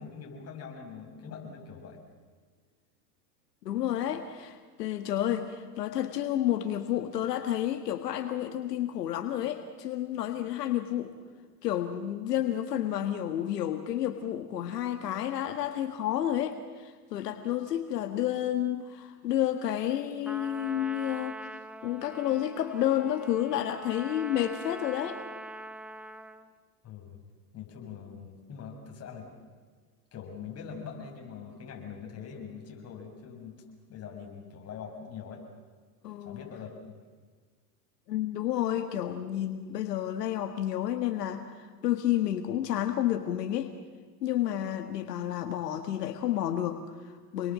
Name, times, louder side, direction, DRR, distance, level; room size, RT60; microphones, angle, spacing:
voice 1, 0.0-2.0 26.8-27.2 27.5-29.4 30.1-33.5 33.9-35.4 36.2-36.7, left 6 dB, 30° left, 1 dB, 6.8 m, -43 dB
voice 2, 3.6-11.1 11.6-21.4 21.8-25.2 36.0-36.4 38.1-43.7 44.2-47.5, left 11 dB, 85° left, 7 dB, 1.7 m, -30 dB
Trumpet, 20.2-26.5, right 1 dB, ahead, 0.7 m, -43 dB
28.0 x 21.5 x 7.5 m, 1.5 s
hypercardioid pair, 105°, 47 cm